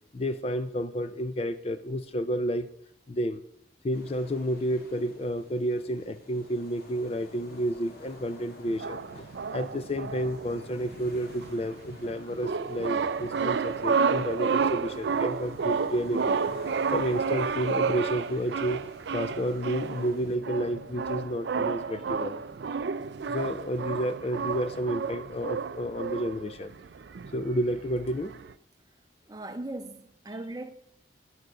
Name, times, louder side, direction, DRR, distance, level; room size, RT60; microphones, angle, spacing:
voice 1, 0.1-2.7 3.1-3.4 3.8-9.3 9.5-16.4 16.9-18.9 19.1-22.4 23.3-26.7 27.3-28.3, equal, 30° left, 0.4 m, -31 dB
sound 1, 3.9-20.4, left 1 dB, 50° left, 2.1 m, -51 dB
sound 2, 8.7-28.5, right 5 dB, 60° right, 0.4 m, -31 dB
voice 2, 29.3-30.7, right 2 dB, 20° right, 0.6 m, -38 dB
10.5 x 6.8 x 6.2 m
head